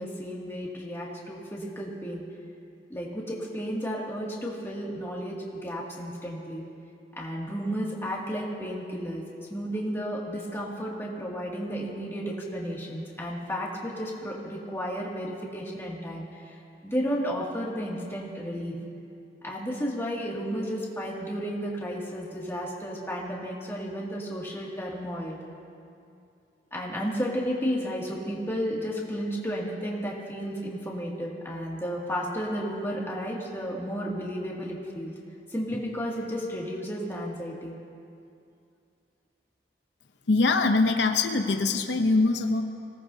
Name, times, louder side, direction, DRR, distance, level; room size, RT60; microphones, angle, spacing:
voice 1, 0.0-2.2 2.9-6.6 7.2-9.2 9.5-16.6 16.8-18.7 19.4-25.4 26.7-35.1 35.5-37.8, equal, 15° left, -4 dB, 2.3 m, -33 dB
voice 2, 40.3-42.6, left 3 dB, 90° left, 6 dB, 0.8 m, -23 dB
25.5 x 18.0 x 2.8 m, 2.5 s
head